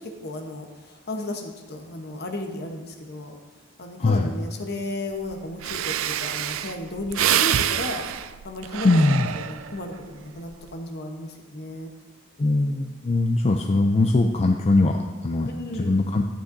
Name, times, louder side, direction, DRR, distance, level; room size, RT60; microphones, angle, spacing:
voice 1, 0.0-3.3 3.8-8.1 8.4-11.9 15.5-16.0, left 1 dB, 55° left, 3 dB, 1.0 m, -34 dB
voice 2, 4.0-4.3 8.8-9.3 12.4-15.5 15.8-16.2, left 2 dB, 30° left, 3 dB, 0.4 m, -21 dB
Breathing, 5.3-5.4 5.6-9.9 10.3-10.7, right 10 dB, 80° right, 0.3 m, -26 dB
11.5 x 8.9 x 2.7 m, 1.3 s
head